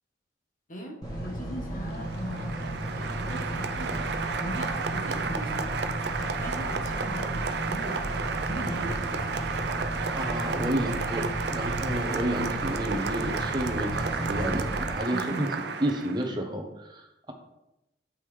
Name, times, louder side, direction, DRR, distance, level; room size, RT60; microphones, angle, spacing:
voice 1, 0.7-2.6 3.0-4.0 4.4-8.1 8.5-9.7 15.1-15.5, right 1 dB, 40° left, 1 dB, 1.2 m, -39 dB
sound 1, 1.0-14.9, right 1 dB, 20° left, 1.4 m, -34 dB
Applause, 1.8-16.3, right 5 dB, 55° right, 0.4 m, -32 dB
voice 2, 10.1-15.5 15.8-17.3, right 1 dB, 20° right, 3 dB, 0.9 m, -31 dB
8.6 x 5.3 x 3.2 m, 0.91 s
head